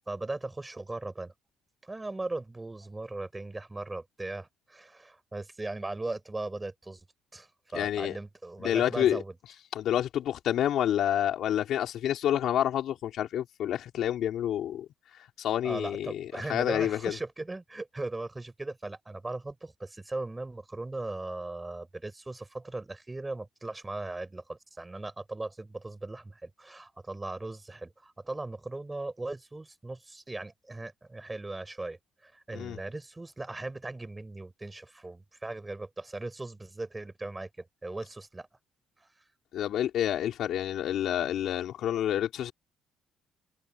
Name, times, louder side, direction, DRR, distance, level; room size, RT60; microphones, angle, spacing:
voice 1, 0.0-1.3 1.8-7.0 7.3-9.3 15.6-38.5 39.0-39.1, right 2 dB, 10° right, 6.4 m, -38 dB
voice 2, 7.7-8.2 8.6-9.2 9.7-14.9 15.4-17.2 32.5-32.8 39.5-42.5, left 11 dB, 55° left, 3.8 m, -28 dB
cardioid pair, 170°, 0 cm